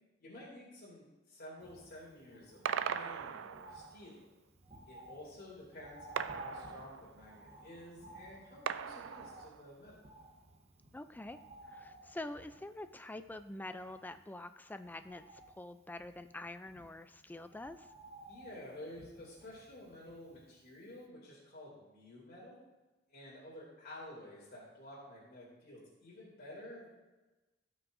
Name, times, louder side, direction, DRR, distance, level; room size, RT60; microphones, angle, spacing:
voice 1, 0.2-4.3 4.9-10.0 18.2-22.6 23.1-26.9, left 1 dB, 50° left, -7 dB, 2.6 m, -51 dB
Bird, 1.6-20.7 21.0-21.1, right 1 dB, 35° right, 1.0 m, -55 dB
sound 1, 2.7-4.0 6.2-7.3 8.7-9.8, right 8 dB, 65° right, 0.4 m, -39 dB
voice 2, 10.9-11.4 11.7-17.9, left 2 dB, 10° left, 10 dB, 0.3 m, -46 dB
17.5 x 6.1 x 2.6 m, 1.1 s
head